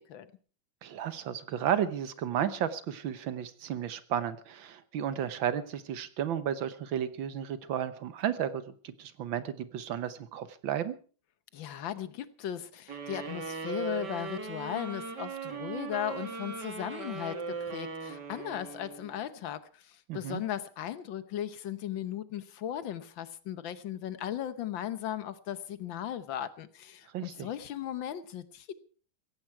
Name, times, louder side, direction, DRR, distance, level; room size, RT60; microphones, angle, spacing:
voice 1, 0.8-10.9 20.1-20.4 27.1-27.5, right 9 dB, 75° right, 13 dB, 1.7 m, -33 dB
voice 2, 11.5-28.7, left 10 dB, 70° left, 14 dB, 1.7 m, -37 dB
sound 1, 12.9-19.3, right 5 dB, 55° right, 2.8 m, -39 dB
16.5 x 15.0 x 4.6 m, 0.40 s
omnidirectional pair, 2.2 m